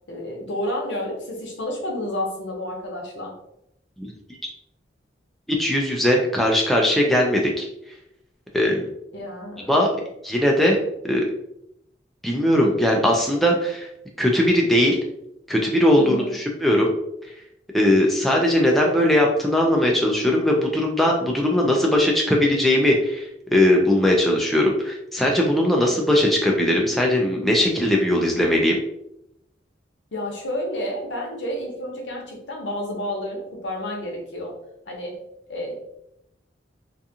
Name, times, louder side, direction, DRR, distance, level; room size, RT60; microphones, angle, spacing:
voice 1, 0.1-3.4 9.1-9.9 16.0-16.4 30.1-34.5 34.9-35.2 35.5-35.7, left 1 dB, 80° left, 0 dB, 0.8 m, -30 dB
voice 2, 5.5-7.7 8.5-8.8 9.7-9.9 10.2-10.8 11.0-11.3 12.2-13.9 14.2-15.0 15.5-16.9 17.7-28.8, left 1 dB, ahead, -1 dB, 0.3 m, -19 dB
2.5 x 2.4 x 2.7 m, 0.79 s
head